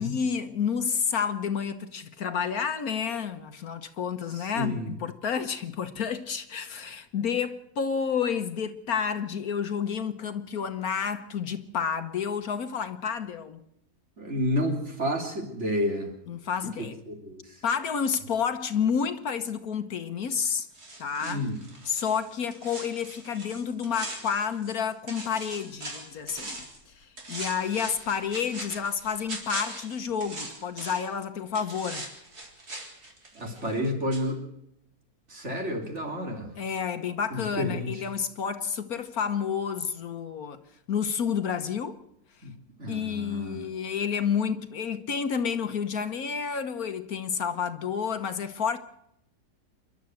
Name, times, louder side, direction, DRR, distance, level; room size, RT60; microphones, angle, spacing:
voice 1, 0.0-13.6 16.3-17.0 17.6-20.7 21.0-21.4 21.8-26.6 27.0-32.0 36.6-40.6 40.9-42.0 42.9-48.8, left 7 dB, 60° left, 1.4 m, -30 dB
voice 2, 4.3-4.9 14.2-16.1 17.1-17.6 21.2-21.6 33.3-34.4 35.3-36.5 37.3-38.1 42.4-42.5 42.8-43.6, left 1 dB, 40° right, 3.5 m, -30 dB
sound 1, 20.7-24.8 25.1-26.8 27.2-31.2 31.5-33.9 34.1-34.2, right 2 dB, 60° right, 4.3 m, -40 dB
28.0 x 12.0 x 7.8 m
omnidirectional pair, 1.8 m